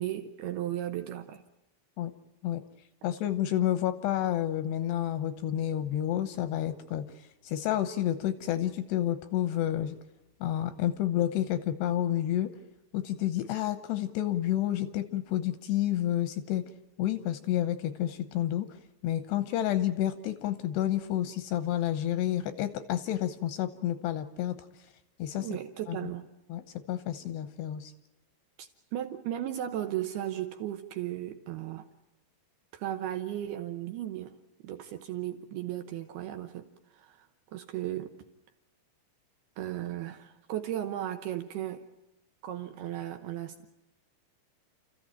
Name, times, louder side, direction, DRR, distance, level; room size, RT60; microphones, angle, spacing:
voice 1, 0.0-1.4 25.3-26.3 28.6-31.9 32.7-34.4 34.6-38.2 39.6-41.9 42.4-43.7, right 12 dB, 80° right, 8 dB, 2.4 m, -36 dB
voice 2, 3.0-7.1 7.4-10.0 10.4-12.5 12.9-16.6 17.0-18.7 19.0-24.6 25.2-25.5 25.9-26.0 26.5-26.6 26.9-27.9, left 12 dB, 75° left, 11 dB, 2.6 m, -30 dB
30.0 x 15.0 x 8.9 m, 0.95 s
omnidirectional pair, 5.9 m